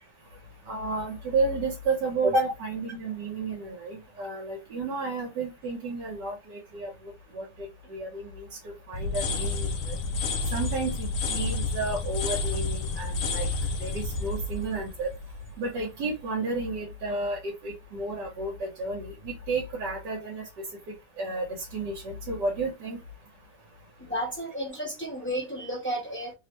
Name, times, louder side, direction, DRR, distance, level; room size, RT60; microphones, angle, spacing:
voice 1, 0.7-6.9 7.3-8.5 8.9-10.0 10.5-13.5 13.8-15.1 15.6-20.4 21.2-23.0, right 3 dB, 75° right, 1.6 m, -31 dB
sound 1, 8.9-15.8, left 3 dB, 65° left, 0.9 m, -30 dB
voice 2, 24.0-26.3, equal, 10° left, 0.7 m, -32 dB
3.3 x 2.1 x 3.1 m
omnidirectional pair, 1.9 m